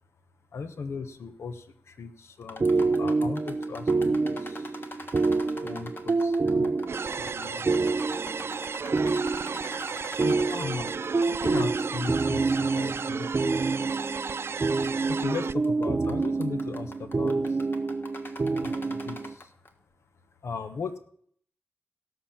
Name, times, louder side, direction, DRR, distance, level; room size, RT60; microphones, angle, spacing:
voice 1, 0.5-2.7 3.0-4.8 5.6-6.8 7.2-7.7 10.2-10.9 11.3-13.3 14.8-17.7 18.6-19.5 20.4-21.0, left 4 dB, 80° left, 9 dB, 1.0 m, -37 dB
sound 1, 2.4-11.5 11.7-11.8 12.6-12.7 13.3-13.4 14.5-14.8 15.1-15.4 15.6-19.7, left 2 dB, 50° left, 1.7 m, -44 dB
sound 2, 2.6-19.3, right 3 dB, 50° right, 0.8 m, -27 dB
sound 3, 6.9-15.5, right 5 dB, 65° right, 0.4 m, -34 dB
17.0 x 5.9 x 7.1 m, 0.63 s
cardioid pair, 45°, 5 cm